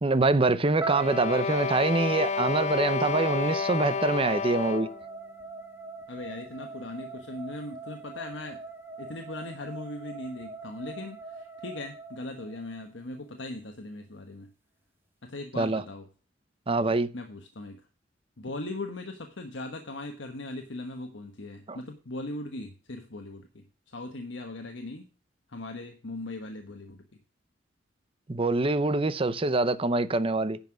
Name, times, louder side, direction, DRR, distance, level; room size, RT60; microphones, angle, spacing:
voice 1, 0.0-4.9 15.6-15.8 16.7-17.1 21.7-21.8 28.3-30.6, right 3 dB, 30° right, 0.7 m, -25 dB
sound 1, 0.8-12.9, right 4 dB, 10° right, 1.7 m, -42 dB
sound 2, 0.9-5.1, left 5 dB, 40° left, 0.4 m, -30 dB
voice 2, 6.1-8.6 9.0-14.5 15.2-16.0 17.1-17.8 18.4-23.6 23.9-25.1 25.5-27.0, left 2 dB, 75° left, 1.2 m, -39 dB
10.5 x 5.7 x 6.3 m
head